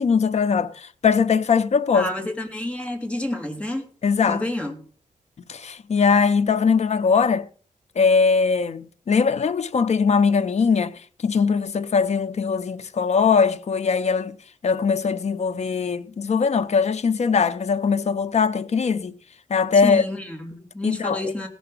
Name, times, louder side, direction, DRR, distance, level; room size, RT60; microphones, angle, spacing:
voice 1, 0.0-2.1 4.0-4.4 5.5-7.5 8.0-14.4 14.6-19.1 19.5-20.0 20.8-21.3, left 5 dB, 55° left, 0.8 m, -21 dB
voice 2, 1.9-3.9 4.3-4.8 19.8-21.5, left 1 dB, 10° left, 2.8 m, -29 dB
17.5 x 6.9 x 5.5 m
wide cardioid pair, 100°, 13 cm